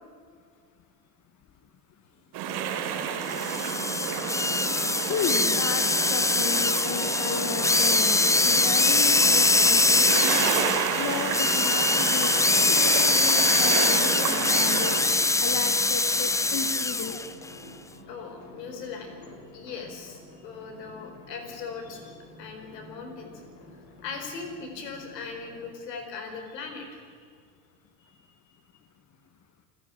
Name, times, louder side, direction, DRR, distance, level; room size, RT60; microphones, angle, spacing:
sound 1, 2.3-15.0, right 7 dB, 50° right, 3.6 m, -30 dB
sound 2, 3.3-17.3, left 3 dB, 5° left, 0.7 m, -23 dB
voice 1, 5.1-10.5 11.0-15.0 15.4-17.2, left 6 dB, 35° left, 7 dB, 1.7 m, -34 dB
sound 3, 8.4-25.7, left 1 dB, 50° left, 5.4 m, -46 dB
voice 2, 17.9-19.3 19.5-23.3 24.0-27.1 28.0-28.3, left 5 dB, 75° left, 5 dB, 4.7 m, -39 dB
29.0 x 10.5 x 9.2 m, 2.1 s
hypercardioid pair, 80°, 50 cm